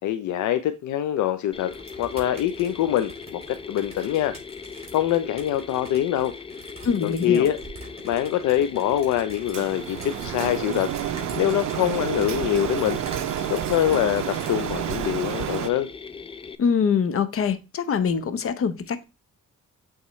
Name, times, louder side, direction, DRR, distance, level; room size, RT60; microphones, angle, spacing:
voice 1, 0.0-1.7 2.0-4.4 4.9-6.3 7.0-7.6 8.0-13.0 13.5-15.9, left 11 dB, 75° left, 0.5 m, -24 dB
Mechanisms, 1.5-16.6, left 5 dB, 20° left, 0.4 m, -40 dB
sound 1, 1.7-14.5, right 3 dB, 20° right, 3.4 m, -46 dB
voice 2, 6.8-7.5 16.6-19.0, left 6 dB, 45° left, 0.8 m, -24 dB
Printer, 9.5-15.7, right 12 dB, 65° right, 0.5 m, -30 dB
8.3 x 3.7 x 3.1 m
cardioid pair, 90°, 30 cm